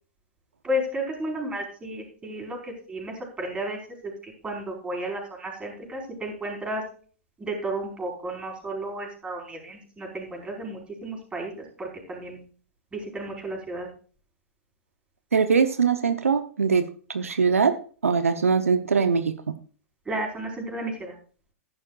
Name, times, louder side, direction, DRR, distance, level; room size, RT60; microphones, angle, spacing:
voice 1, 0.6-6.8 7.4-12.4 12.9-13.9 20.0-21.1, right 1 dB, 15° right, 0 dB, 4.8 m, -33 dB
voice 2, 15.3-16.8 17.1-17.7 18.0-19.3, right 5 dB, 85° right, 9 dB, 0.9 m, -22 dB
14.5 x 11.0 x 2.4 m, 0.41 s
hypercardioid pair, 115°, 7 cm